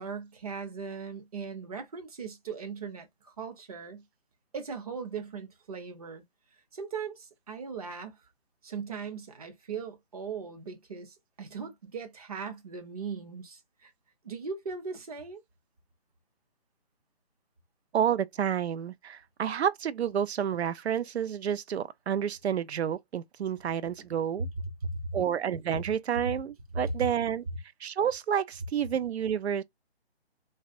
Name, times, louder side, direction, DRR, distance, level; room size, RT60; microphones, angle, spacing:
voice 1, 0.0-4.0 4.5-6.2 6.7-8.2 8.6-13.9 14.2-15.4 24.3-25.2 25.7-25.9 26.2-26.3 26.7-27.1 27.5-27.6, right 4 dB, 35° right, 0.7 m, -38 dB
voice 2, 17.9-24.5 25.1-27.4 27.8-29.6, right 9 dB, 75° right, 0.5 m, -29 dB
3.1 x 2.4 x 2.4 m
figure-of-eight pair, 150°, 32 cm